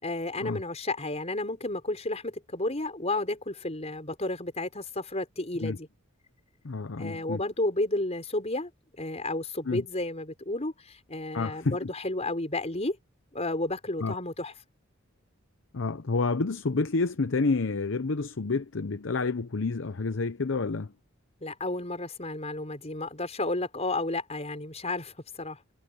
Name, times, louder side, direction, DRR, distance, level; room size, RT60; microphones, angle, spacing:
voice 1, 0.0-5.9 7.0-8.7 9.0-13.0 13.3-14.5 21.4-25.6, left 2 dB, 30° left, 5.5 m, -32 dB
voice 2, 6.6-7.4 9.7-9.8 11.3-11.9 14.0-14.2 15.7-20.9, left 3 dB, 65° left, 0.8 m, -29 dB
head